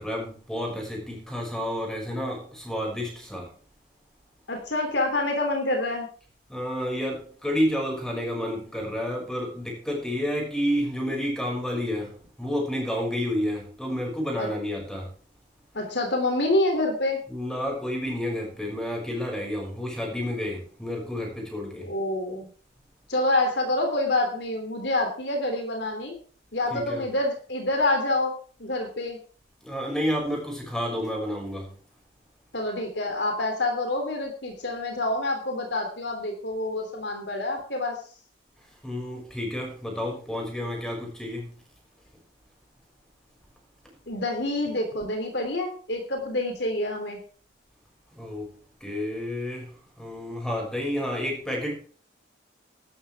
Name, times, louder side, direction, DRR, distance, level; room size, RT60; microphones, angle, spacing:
voice 1, 0.0-3.6 6.5-15.1 17.3-21.9 26.7-27.1 29.6-31.8 38.6-41.6 43.8-44.0 48.1-51.8, equal, 5° left, -1 dB, 6.2 m, -30 dB
voice 2, 4.5-6.1 14.4-14.5 15.7-17.2 21.8-22.5 23.1-26.1 26.5-28.3 28.6-29.2 32.5-38.0 44.1-47.2, left 2 dB, 60° left, 4 dB, 3.2 m, -27 dB
16.0 x 12.5 x 3.6 m, 0.43 s
head